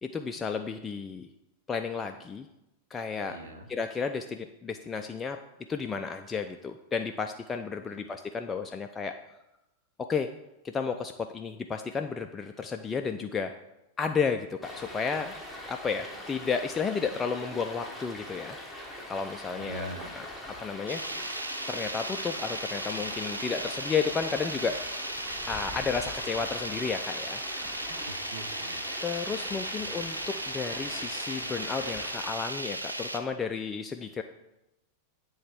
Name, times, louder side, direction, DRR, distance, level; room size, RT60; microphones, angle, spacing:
voice 1, 0.0-1.3 1.7-2.5 2.9-3.4 3.7-5.4 5.7-9.1 10.1-10.3 10.6-13.5 14.0-15.4 15.7-18.6 18.9-19.9 20.6-21.0 21.7-24.8 25.5-27.4 29.0-34.2, left 5 dB, 20° left, 5 dB, 0.3 m, -32 dB
voice 2, 3.3-3.7 7.9-8.0 19.5-20.1 28.1-28.8 29.8-29.9, right 1 dB, 65° right, 5 dB, 0.8 m, -42 dB
Stream, 14.6-32.3, left 1 dB, ahead, 1.1 m, -42 dB
sound 1, 20.9-33.2, right 1 dB, 85° right, 0.4 m, -36 dB
9.5 x 3.5 x 3.5 m, 0.93 s
figure-of-eight pair, 90°, 0 cm